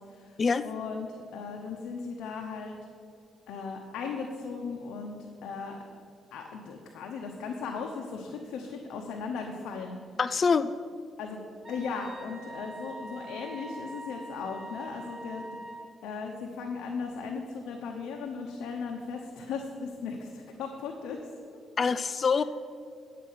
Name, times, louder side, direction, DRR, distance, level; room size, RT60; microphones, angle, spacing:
voice 1, 0.0-2.7 3.5-5.2 5.4-5.8 6.3-10.0 11.2-11.4 11.7-15.5 16.0-21.2 22.4-22.5, left 5 dB, 85° left, 2 dB, 0.9 m, -37 dB
voice 2, 10.2-10.7 21.8-22.4, left 5 dB, 40° left, 14 dB, 0.3 m, -25 dB
Wind instrument woodwind instrument, 11.6-15.9, right 1 dB, 40° right, 1.7 m, -43 dB
10.5 x 7.5 x 5.7 m, 2.4 s
cardioid pair, 90°, 0 cm